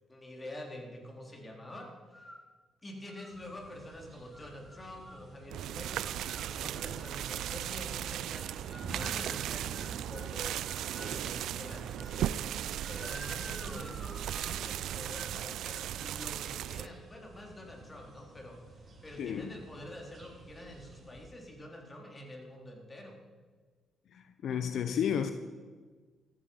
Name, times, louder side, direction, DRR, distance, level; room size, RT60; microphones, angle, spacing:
voice 1, 0.1-2.3 2.8-6.0 6.4-12.4 12.9-23.2, left 1 dB, 25° left, 3.8 m, -47 dB
sound 1, 2.1-2.5 3.1-3.7 4.3-5.3 5.9-7.8 8.4-11.2 11.7-12.2 12.7-14.7 15.1-15.4 15.7-16.1, equal, 5° left, 1.9 m, -52 dB
sound 2, 3.3-21.3, right 2 dB, 45° right, 4.7 m, -52 dB
sound 3, 5.5-16.9, right 11 dB, 80° right, 0.4 m, -37 dB
voice 2, 19.2-19.5 24.4-25.3, left 8 dB, 70° left, 0.8 m, -31 dB
14.0 x 14.0 x 5.6 m
cardioid pair, 90°, 0 cm